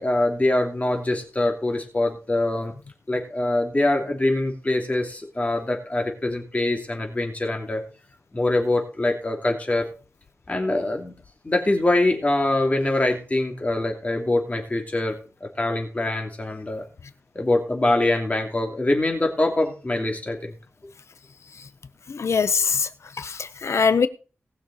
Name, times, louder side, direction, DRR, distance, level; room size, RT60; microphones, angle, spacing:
voice 1, 0.0-2.7 3.1-7.8 8.3-9.9 10.5-11.1 11.4-15.1 15.4-16.8 17.3-20.5, left 2 dB, 30° left, 2.8 m, -24 dB
voice 2, 22.1-22.9 23.2-24.1, left 5 dB, 80° left, 0.8 m, -22 dB
19.0 x 6.5 x 4.1 m
wide cardioid pair, 105°, 5 cm